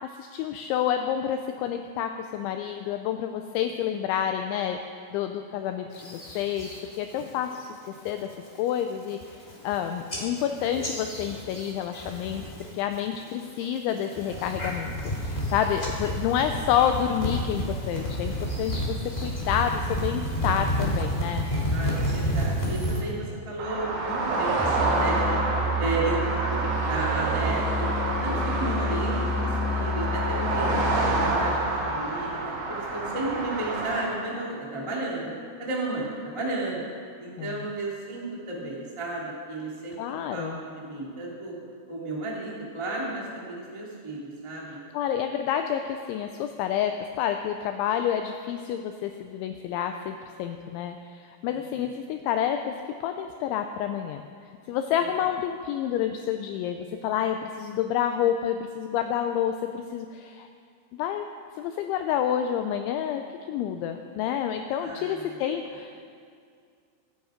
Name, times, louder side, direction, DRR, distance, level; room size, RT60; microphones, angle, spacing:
voice 1, 0.0-4.8 5.1-6.7 6.9-7.8 8.1-8.3 8.6-12.5 12.7-21.5 37.4-37.7 40.0-40.6 44.9-52.7 53.0-54.2 54.7-60.5 61.0-61.3 61.6-63.2 63.5-66.0, left 9 dB, 85° left, 6 dB, 2.7 m, -29 dB
sound 1, 6.0-6.8 7.2-7.6 7.9-8.3 8.8-8.9 9.1-9.8 10.1-12.7 12.9-13.4 14.0-23.0, equal, 50° left, 0.4 m, -30 dB
voice 2, 18.5-18.8 21.7-25.4 25.8-27.9 28.2-35.3 35.6-36.8 37.2-41.5 41.9-44.8 51.4-51.9 64.8-65.4, right 2 dB, 45° right, -4 dB, 0.4 m, -33 dB
sound 2, 23.6-34.0, right 2 dB, 70° right, 4.7 m, -28 dB
Musical instrument, 24.6-31.6, left 1 dB, ahead, 1.3 m, -29 dB
23.0 x 9.6 x 5.0 m, 2.3 s
omnidirectional pair, 6.0 m